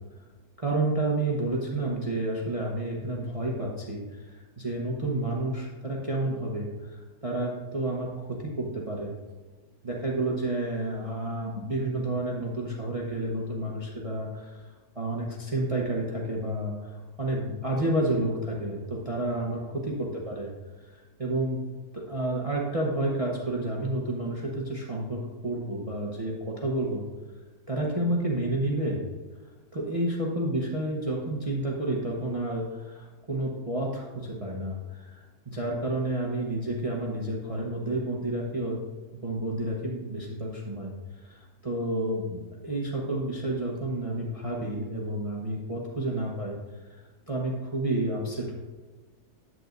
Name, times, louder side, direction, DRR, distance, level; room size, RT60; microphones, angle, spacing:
voice 1, 0.6-9.1 9.8-20.5 20.8-21.6 21.9-27.0 27.7-29.0 29.7-38.8 39.1-40.9 41.2-46.6 47.3-48.5, right 1 dB, 25° right, -2 dB, 0.9 m, -30 dB
11.0 x 8.6 x 2.6 m, 1.3 s
omnidirectional pair, 1.7 m